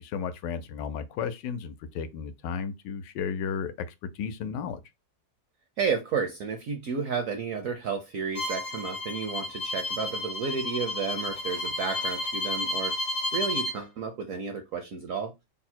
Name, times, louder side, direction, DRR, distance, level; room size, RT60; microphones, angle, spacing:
voice 1, 0.0-4.8, left 7 dB, 80° left, 1.2 m, -34 dB
voice 2, 5.8-13.0 13.3-15.3, right 5 dB, 70° right, 0.8 m, -32 dB
Bowed string instrument, 8.3-13.8, left 1 dB, 40° left, 0.5 m, -32 dB
3.5 x 2.0 x 4.2 m
omnidirectional pair, 1.9 m